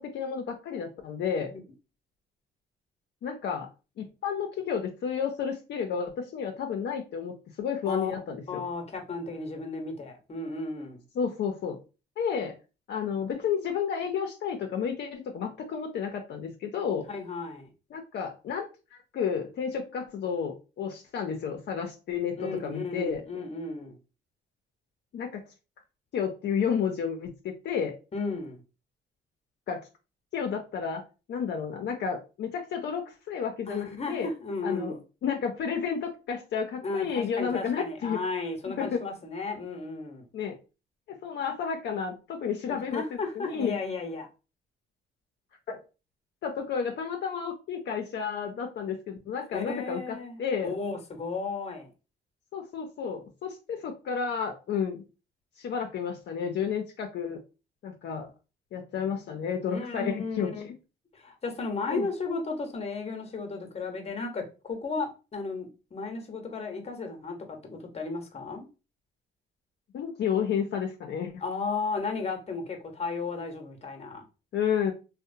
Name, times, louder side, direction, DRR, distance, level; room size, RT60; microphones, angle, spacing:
voice 1, 0.0-1.5 3.2-3.7 4.0-8.6 11.1-11.8 12.2-12.6 12.9-17.0 17.9-18.7 19.1-23.2 25.1-25.4 26.1-27.9 29.7-29.9 30.3-31.0 31.3-34.3 34.6-34.9 35.2-38.2 38.7-39.0 40.3-40.6 41.1-43.8 45.7-45.8 46.4-50.7 52.5-55.0 55.6-57.4 57.8-58.3 58.7-60.5 61.9-62.1 69.9-71.3 74.5-74.9, left 7 dB, 60° left, 0.5 m, -31 dB
voice 2, 8.5-11.0 17.1-17.7 22.4-24.0 28.1-28.6 33.7-35.0 36.8-40.3 42.7-44.3 49.5-51.9 59.7-60.7 61.1-68.7 71.4-74.2, left 3 dB, 30° left, 0.8 m, -34 dB
2.7 x 2.1 x 2.5 m
cardioid pair, 90°, 20 cm